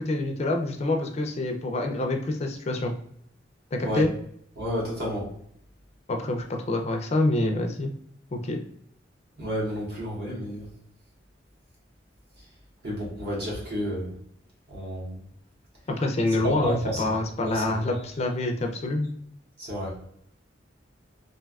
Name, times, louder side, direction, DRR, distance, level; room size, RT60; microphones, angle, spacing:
voice 1, 0.0-2.9 3.7-4.1 6.1-7.9 8.3-8.6 15.9-19.1, left 2 dB, 35° left, 3 dB, 0.4 m, -26 dB
voice 2, 4.6-5.3 9.4-10.7 12.8-14.1 14.7-15.1 16.4-17.1 17.4-17.9 19.6-19.9, equal, 60° right, -5 dB, 1.4 m, -31 dB
3.3 x 2.5 x 2.3 m, 0.66 s
head